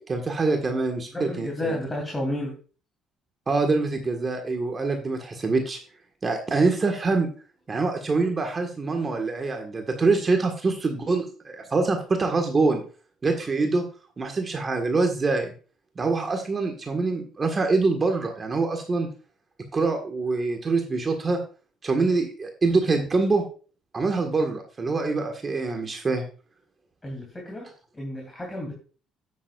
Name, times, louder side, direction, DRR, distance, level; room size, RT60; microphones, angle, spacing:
voice 1, 0.1-1.8 3.5-5.8 6.2-7.3 7.7-12.8 13.2-13.8 14.2-15.5 15.9-19.1 19.7-21.4 21.8-23.4 23.9-26.2, right 3 dB, 30° right, 4 dB, 1.6 m, -25 dB
voice 2, 1.1-2.6 27.0-28.7, left 1 dB, 15° left, -1 dB, 3.0 m, -32 dB
9.3 x 9.2 x 2.4 m, 0.37 s
cardioid pair, 95°, 0 cm